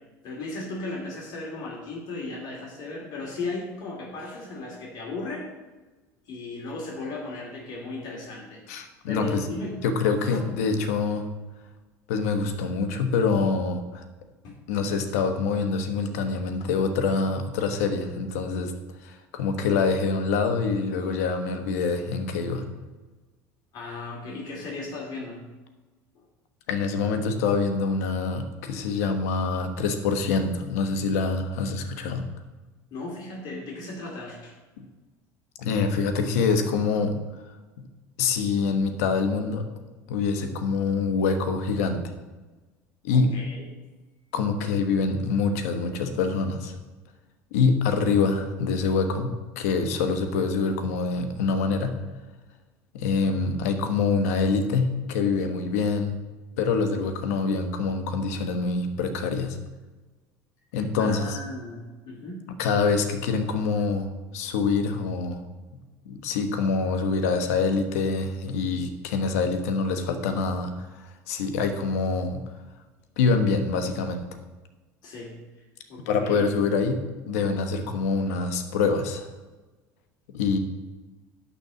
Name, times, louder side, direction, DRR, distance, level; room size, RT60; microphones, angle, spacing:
voice 1, 0.2-5.5 6.3-8.6 9.1-9.8 10.2-10.4 14.4-14.6 23.7-25.5 26.1-26.2 32.9-34.6 43.1-43.7 60.7-62.5 75.0-75.6 75.9-76.5, left 3 dB, 60° left, -2 dB, 2.6 m, -36 dB
voice 2, 8.7-9.4 9.8-11.3 12.1-14.0 14.7-18.7 19.0-22.6 26.7-32.2 34.8-34.9 35.6-37.2 38.2-39.7 40.1-42.0 43.0-43.3 44.3-46.7 47.5-51.9 52.9-56.1 56.6-59.6 60.7-61.4 62.6-64.1 64.3-65.4 66.0-70.9 71.3-72.4 73.2-74.2 76.0-77.0 77.3-79.3 80.3-80.6, left 4 dB, 85° left, 7 dB, 1.2 m, -25 dB
11.5 x 4.2 x 7.4 m, 1.2 s
supercardioid pair, 90°, 8 cm